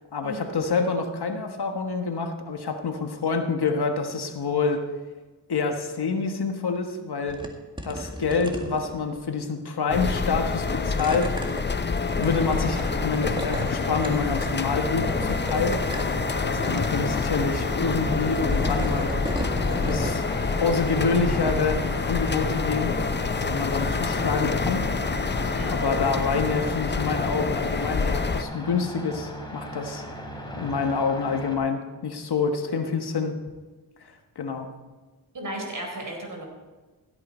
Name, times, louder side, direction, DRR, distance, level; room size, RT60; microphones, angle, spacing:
voice 1, 0.1-4.8 5.5-7.4 7.8-11.3 12.2-15.8 16.4-19.2 19.7-20.2 20.6-23.0 23.4-30.0 30.6-33.3 34.3-34.7, left 4 dB, 65° left, 5 dB, 1.4 m, -27 dB
sound 1, 7.3-7.5 7.8-9.2 10.0-10.3 10.7-13.7 14.0-14.7 15.0-16.3 16.6-16.9 17.9-20.2, equal, 10° right, 1.9 m, -35 dB
sound 2, 9.9-28.4, left 4 dB, 25° left, 0.7 m, -27 dB
sound 3, 12.3-31.6, equal, 10° left, 3.0 m, -36 dB
voice 2, 25.5-25.9 35.3-36.4, right 1 dB, 50° right, 1 dB, 4.1 m, -35 dB
15.5 x 8.9 x 4.4 m, 1.3 s
cardioid pair, 55°, 41 cm